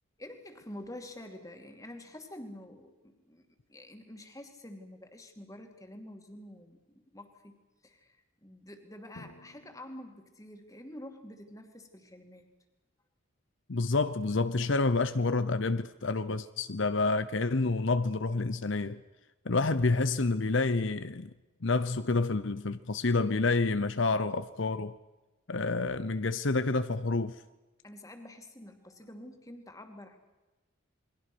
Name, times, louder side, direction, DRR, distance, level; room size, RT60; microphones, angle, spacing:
voice 1, 0.2-7.6 7.8-12.4 27.8-30.2, left 1 dB, 15° left, 2.5 m, -48 dB
Drum, 9.2-11.1, left 1 dB, 85° left, 2.1 m, -55 dB
voice 2, 13.7-19.0 19.4-21.3 21.6-24.9 25.5-27.4, left 3 dB, 60° left, 0.8 m, -28 dB
28.5 x 22.5 x 6.2 m
head